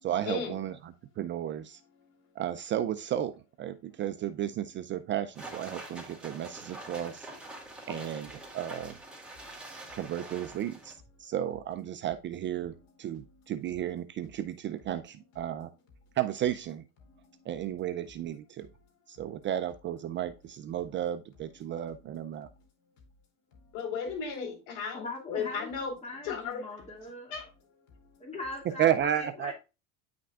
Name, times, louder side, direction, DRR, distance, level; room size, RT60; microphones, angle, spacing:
voice 1, 0.0-1.8 2.4-7.3 7.9-9.0 9.9-15.7 16.2-16.9 17.5-18.7 19.1-22.5 28.8-29.5, right 11 dB, 30° right, 10 dB, 0.4 m, -33 dB
sound 1, 5.3-10.9, right 2 dB, 5° right, 2.4 m, -45 dB
voice 2, 23.7-25.9 26.2-26.6 27.3-27.4, left 6 dB, 75° left, 3 dB, 4.2 m, -35 dB
voice 3, 24.9-27.3 28.2-29.5, left 2 dB, 15° left, -1 dB, 2.4 m, -41 dB
9.5 x 5.9 x 2.4 m, 0.30 s
supercardioid pair, 135°, 40 cm